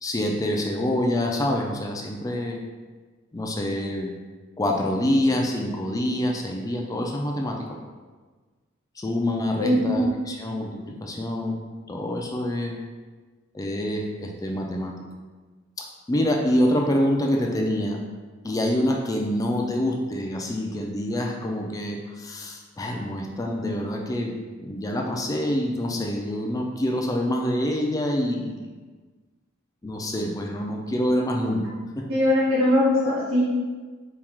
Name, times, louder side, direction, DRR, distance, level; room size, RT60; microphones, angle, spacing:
voice 1, 0.0-2.6 3.3-4.2 4.6-7.6 9.0-11.6 11.9-12.8 13.5-14.9 15.8-18.0 18.4-28.7 29.8-31.7 32.0-32.1 32.6-32.7 33.0-33.1, left 1 dB, 15° left, 1 dB, 0.3 m, -26 dB
voice 2, 9.6-9.9 32.1-33.4, left 1 dB, 85° right, -7 dB, 1.4 m, -21 dB
4.3 x 2.3 x 3.6 m, 1.4 s
head